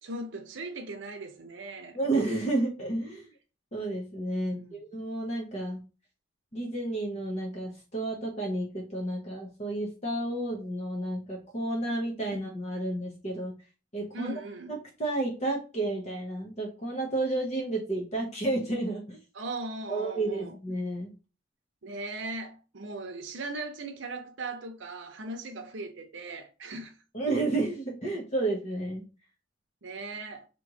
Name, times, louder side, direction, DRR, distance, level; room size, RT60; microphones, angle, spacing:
voice 1, 0.0-2.0 4.3-4.8 14.1-14.8 19.3-20.6 21.8-26.9 29.8-30.5, right 2 dB, 80° right, 0.7 m, -38 dB
voice 2, 1.9-3.3 3.7-5.8 6.5-13.5 13.9-14.3 14.7-19.2 19.9-21.1 27.1-29.0, right 2 dB, 35° left, 1.0 m, -31 dB
3.4 x 3.0 x 4.8 m
head